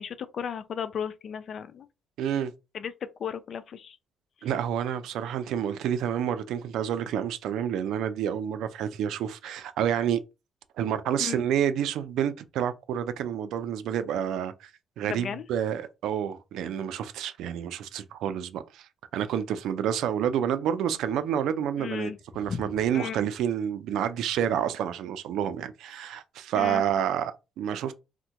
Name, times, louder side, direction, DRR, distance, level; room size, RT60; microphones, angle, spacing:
voice 1, 0.0-1.9 2.7-4.0 4.4-4.5 11.2-11.4 15.0-15.4 21.8-22.2 22.5-22.7 22.9-23.2 26.5-26.8, left 7 dB, 50° left, 0.3 m, -35 dB
voice 2, 2.2-2.5 4.4-10.2 10.8-14.7 15.0-18.9 19.1-22.1 22.4-27.9, right 9 dB, 85° right, 0.3 m, -29 dB
3.4 x 2.1 x 2.9 m
cardioid pair, 130°, 0 cm